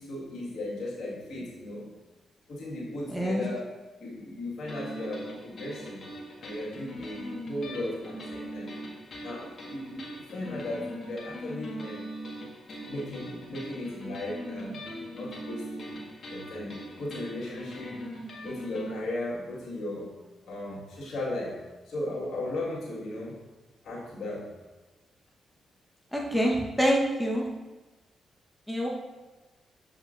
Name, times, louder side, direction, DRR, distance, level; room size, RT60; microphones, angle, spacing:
voice 1, 0.0-1.9 2.5-3.7 4.0-6.1 6.4-8.7 9.2-12.1 12.9-14.8 15.1-16.0 16.3-18.1 18.4-20.1 20.5-21.6 21.9-23.4 23.8-24.5, left 1 dB, 70° left, -5 dB, 1.8 m, -36 dB
voice 2, 3.1-3.4 26.1-27.4 28.7-28.9, equal, ahead, -2 dB, 1.1 m, -26 dB
sound 1, 4.7-18.9, equal, 50° left, 1.5 m, -40 dB
7.0 x 5.4 x 2.6 m, 1.2 s
supercardioid pair, 50°, 0 cm